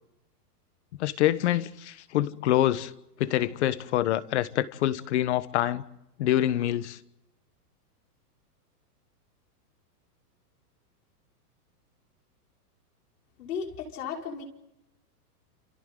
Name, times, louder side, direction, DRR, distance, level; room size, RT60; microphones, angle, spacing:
voice 1, 1.0-2.9 3.2-5.8 6.2-7.0, left 13 dB, 45° left, 1.1 m, -26 dB
voice 2, 13.4-14.4, left 6 dB, 70° left, 5.6 m, -35 dB
30.0 x 28.5 x 3.9 m
supercardioid pair, 175°, 47 cm